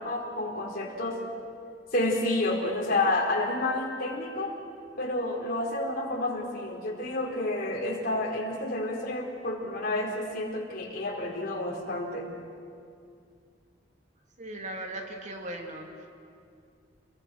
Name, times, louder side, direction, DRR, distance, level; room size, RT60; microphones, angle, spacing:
voice 1, 0.0-1.2 1.9-4.5 5.0-12.3, left 2 dB, 55° left, -1 dB, 4.2 m, -30 dB
voice 2, 14.4-15.9, right 1 dB, 40° right, 2 dB, 2.8 m, -38 dB
29.5 x 22.5 x 6.3 m, 2.4 s
head